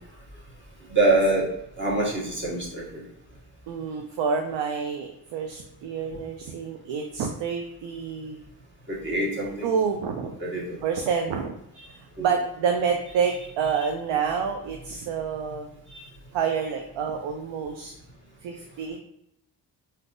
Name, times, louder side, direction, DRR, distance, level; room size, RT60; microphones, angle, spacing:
voice 1, 0.9-1.5 1.8-3.0 8.9-9.7 10.4-10.8 12.2-12.3 15.9-16.1, right 2 dB, 25° right, -4 dB, 1.4 m, -25 dB
voice 2, 3.7-8.4 9.6-10.4 10.8-11.6 12.2-15.7 16.3-17.9 18.4-19.0, right 6 dB, 75° right, 3 dB, 0.5 m, -28 dB
3.4 x 2.7 x 2.5 m, 0.79 s
supercardioid pair, 50°, 45 cm